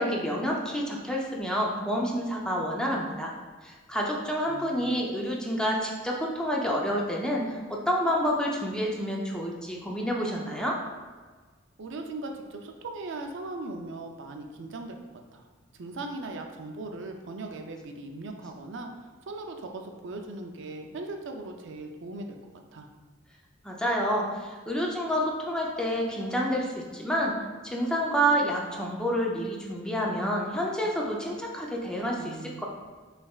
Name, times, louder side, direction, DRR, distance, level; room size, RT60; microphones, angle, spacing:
voice 1, 0.0-3.3 3.6-10.8 23.6-27.4 27.6-32.7, equal, 5° left, -2 dB, 0.5 m, -28 dB
voice 2, 4.4-4.8 11.8-15.0 15.3-15.5 15.7-22.4 22.7-22.9 32.1-32.7, right 2 dB, 65° right, 3 dB, 0.5 m, -39 dB
5.6 x 3.3 x 2.4 m, 1.4 s
head